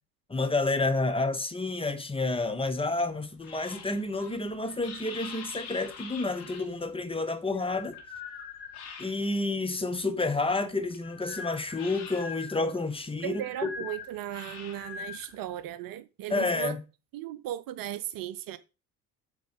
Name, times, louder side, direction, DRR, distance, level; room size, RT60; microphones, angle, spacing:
voice 1, 0.3-8.0 9.0-13.7 16.3-16.8, left 3 dB, 10° left, 1.0 m, -30 dB
sound 1, 2.3-9.5 9.9-15.7, left 6 dB, 60° left, 1.6 m, -44 dB
voice 2, 13.2-16.8 17.1-18.6, right 12 dB, 45° right, 0.6 m, -36 dB
7.8 x 3.8 x 5.1 m
figure-of-eight pair, 55°, 47 cm